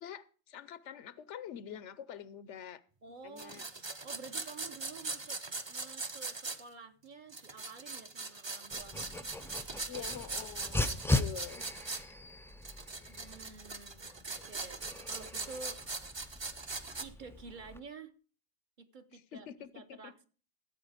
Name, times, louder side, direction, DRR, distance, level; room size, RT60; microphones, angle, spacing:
voice 1, 0.0-2.8 3.2-3.7 9.9-11.6 19.1-20.1, left 9 dB, 90° left, 1.0 m, -46 dB
voice 2, 3.0-3.6 4.0-5.4 5.7-9.2 13.1-15.8 17.0-18.1 18.8-19.5 19.7-20.3, right 4 dB, 50° right, 1.0 m, -50 dB
sound 1, 3.4-6.6 7.3-12.0 12.6-17.0, right 3 dB, 30° right, 0.7 m, -41 dB
Dog, 8.7-17.8, left 2 dB, 5° left, 0.3 m, -39 dB
14.5 x 8.0 x 5.0 m
omnidirectional pair, 1.2 m